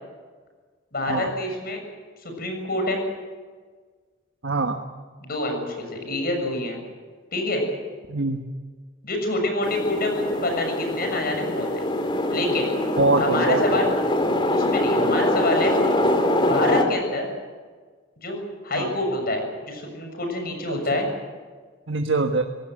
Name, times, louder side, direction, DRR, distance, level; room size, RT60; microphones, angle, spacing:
voice 1, 0.9-1.8 2.2-3.0 5.2-6.8 7.3-7.6 9.0-11.9 12.3-12.7 13.2-13.9 14.5-15.8 16.4-17.3 18.2-21.1, left 2 dB, 55° left, 3 dB, 6.8 m, -27 dB
voice 2, 4.4-4.8 6.4-6.5 8.1-8.4 13.0-13.8 18.7-19.0 20.7-21.0 21.9-22.4, right 3 dB, 80° right, 4 dB, 1.4 m, -24 dB
sound 1, 9.6-16.8, left 1 dB, 25° left, 2.5 m, -23 dB
26.5 x 18.5 x 7.8 m, 1.5 s
head